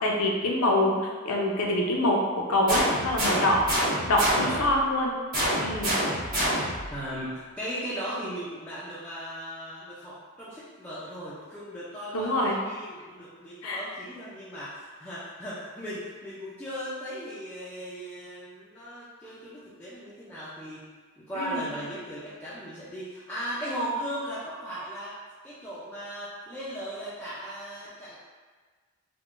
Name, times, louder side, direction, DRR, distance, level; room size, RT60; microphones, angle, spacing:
voice 1, 0.0-1.0 1.2-3.6 4.1-5.1 5.6-5.9 12.1-12.6 13.6-13.8 21.3-21.7, left 1 dB, 75° left, -1 dB, 0.5 m, -25 dB
sound 1, 2.7-4.7 5.3-6.9, equal, 35° right, 1.2 m, -27 dB
voice 2, 6.9-20.9 21.2-25.2 25.4-28.2, equal, 5° left, -11 dB, 0.3 m, -37 dB
3.6 x 2.1 x 2.4 m, 1.4 s
head